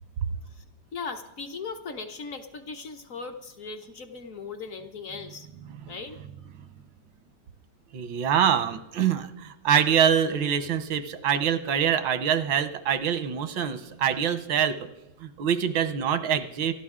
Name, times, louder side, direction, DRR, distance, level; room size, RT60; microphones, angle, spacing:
voice 1, 0.9-5.5 5.9-6.2, left 4 dB, 55° left, 5 dB, 1.0 m, -38 dB
voice 2, 7.9-14.8 15.2-16.7, right 8 dB, 90° right, 11 dB, 1.7 m, -25 dB
27.0 x 11.5 x 3.7 m, 0.91 s
omnidirectional pair, 2.0 m